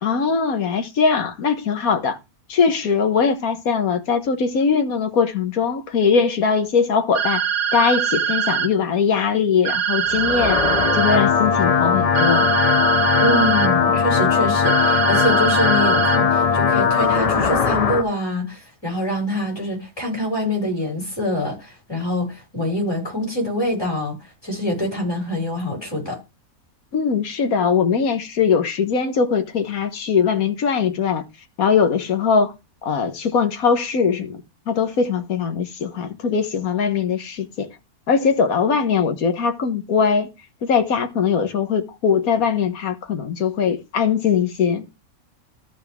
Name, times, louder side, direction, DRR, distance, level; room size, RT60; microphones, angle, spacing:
voice 1, 0.0-2.2 2.5-7.4 7.7-10.6 10.9-12.5 26.9-31.2 31.6-32.5 32.8-37.7 38.1-40.3 40.6-44.8, left 6 dB, 75° left, 1.6 m, -21 dB
sound 1, 7.1-8.7 9.6-11.2 12.1-13.7 14.6-16.2, right 8 dB, 75° right, 1.4 m, -22 dB
sound 2, 10.1-18.0, left 6 dB, 55° left, 0.4 m, -19 dB
voice 2, 13.2-24.1 24.4-26.2, left 1 dB, 15° left, 5.9 m, -25 dB
14.0 x 4.7 x 3.5 m
omnidirectional pair, 1.5 m